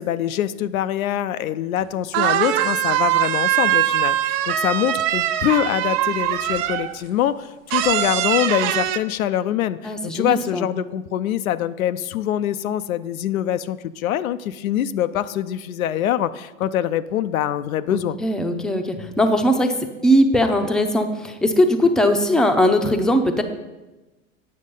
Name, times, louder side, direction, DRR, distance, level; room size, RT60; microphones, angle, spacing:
voice 1, 0.0-18.2, left 11 dB, 85° left, 12 dB, 0.6 m, -24 dB
sound 1, 1.8-1.9 2.1-7.0 7.7-9.0, right 12 dB, 50° right, 0.6 m, -22 dB
voice 2, 9.8-10.7 17.9-19.8 20.0-23.4, equal, ahead, 5 dB, 0.6 m, -19 dB
8.6 x 6.4 x 5.4 m, 1.1 s
hypercardioid pair, 110°, 40 cm